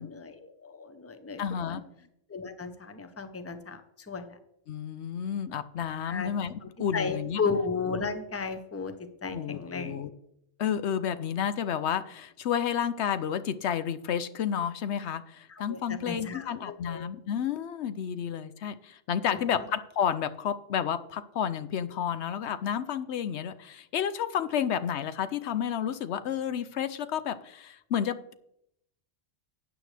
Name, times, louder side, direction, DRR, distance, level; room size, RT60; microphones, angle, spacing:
voice 1, 0.0-1.8 2.3-4.4 6.0-6.3 6.6-8.9 9.2-10.0 15.5-17.1 19.3-19.7, left 5 dB, 15° left, 9 dB, 0.7 m, -35 dB
voice 2, 1.4-1.8 4.7-7.4 9.3-10.1 10.6-28.3, left 8 dB, 75° left, 13 dB, 0.9 m, -31 dB
12.5 x 9.0 x 3.3 m, 0.76 s
omnidirectional pair, 1.2 m